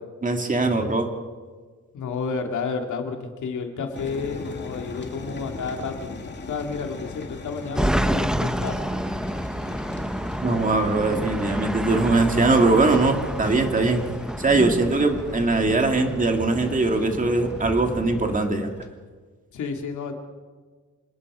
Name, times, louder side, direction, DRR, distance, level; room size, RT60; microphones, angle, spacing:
voice 1, 0.2-1.1 10.4-14.1 14.4-18.7, right 3 dB, 25° right, 4 dB, 2.3 m, -21 dB
voice 2, 1.9-6.1 6.5-8.8 19.5-20.1, left 5 dB, 80° left, 4 dB, 2.6 m, -31 dB
sound 1, 3.9-18.9, left 4 dB, 40° left, 2.5 m, -41 dB
sound 2, 7.8-18.4, equal, ahead, 0.9 m, -29 dB
27.5 x 19.0 x 5.0 m, 1.4 s
wide cardioid pair, 135°, 29 cm